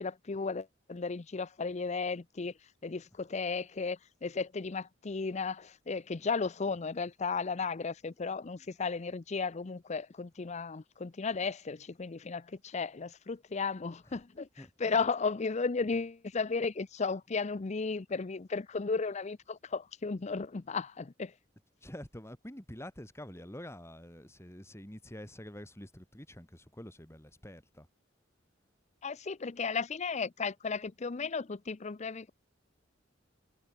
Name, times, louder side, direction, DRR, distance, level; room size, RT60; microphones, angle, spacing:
voice 1, 0.0-2.5 2.8-14.5 14.8-21.3 29.0-32.3, left 4 dB, 35° left, 0.6 m, -34 dB
voice 2, 14.6-15.1 21.8-27.9, left 1 dB, 15° left, 4.5 m, -47 dB
head